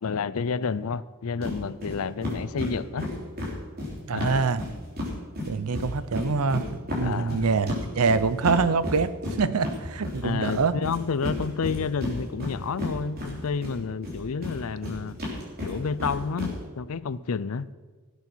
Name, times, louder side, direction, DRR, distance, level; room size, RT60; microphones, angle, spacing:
voice 1, 0.0-3.1 4.1-4.4 7.0-7.4 10.2-15.2 15.6-17.7, left 5 dB, 75° left, 18 dB, 0.5 m, -30 dB
sound 1, 1.4-1.6 1.8-1.9 2.2-5.1 5.4-13.7 14.0-16.5, left 1 dB, 45° right, 3.8 m, -32 dB
voice 2, 4.1-4.6 5.5-6.6 6.9-9.1 9.4-10.7, right 4 dB, 80° right, 15 dB, 0.6 m, -25 dB
16.5 x 8.3 x 6.2 m, 1.3 s
head